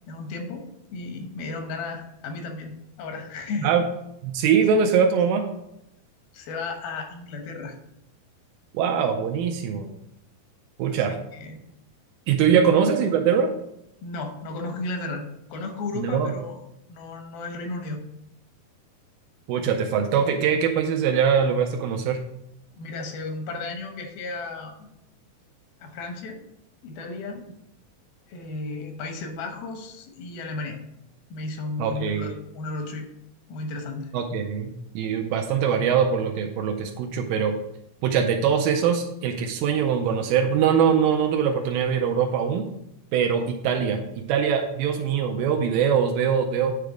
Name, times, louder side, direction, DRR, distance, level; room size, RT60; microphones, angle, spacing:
voice 1, 0.1-0.6 0.9-3.7 6.3-7.8 10.9-11.7 12.5-12.6 14.0-15.2 15.5-16.6 16.9-18.0 22.7-24.9 25.8-26.4 26.8-27.4 28.3-30.8 31.3-33.1 33.5-34.1, left 3 dB, 85° left, 4 dB, 2.9 m, -34 dB
voice 2, 4.2-5.5 8.7-10.0 10.8-11.2 12.3-13.5 16.0-16.3 19.5-22.2 31.8-32.3 34.1-37.5 38.0-42.7 43.1-46.7, right 7 dB, 80° right, 3 dB, 2.3 m, -22 dB
9.4 x 3.5 x 4.9 m, 0.81 s
omnidirectional pair, 4.1 m